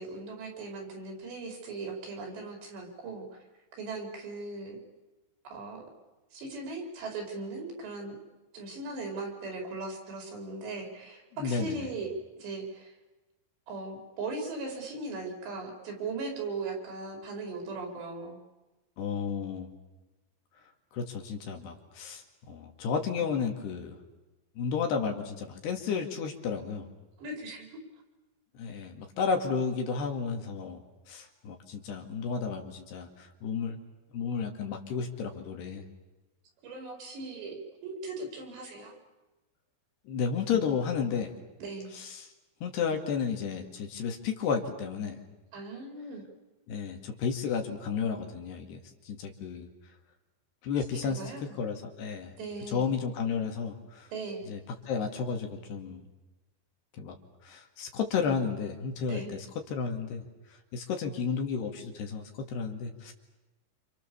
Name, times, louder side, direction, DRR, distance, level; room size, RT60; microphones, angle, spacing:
voice 1, 0.0-3.3 3.8-4.8 5.5-5.8 6.3-8.2 8.5-12.1 12.4-12.9 13.7-18.4 27.2-27.7 36.6-39.0 41.6-41.9 45.5-46.2 51.0-51.6 52.4-52.9 54.1-54.5 59.1-59.3, right 3 dB, 65° right, 2 dB, 6.8 m, -38 dB
voice 2, 11.4-11.9 19.0-19.7 20.9-23.9 24.6-26.9 28.6-30.8 31.1-33.8 34.1-35.8 40.1-41.3 41.9-42.3 42.6-45.2 46.7-48.8 49.1-49.7 50.6-52.3 52.7-54.1 54.5-54.6 54.9-56.0 57.0-57.2 57.4-60.2 60.7-63.1, left 6 dB, 65° left, 3 dB, 4.1 m, -32 dB
29.0 x 27.5 x 7.1 m, 1.1 s
omnidirectional pair, 5.5 m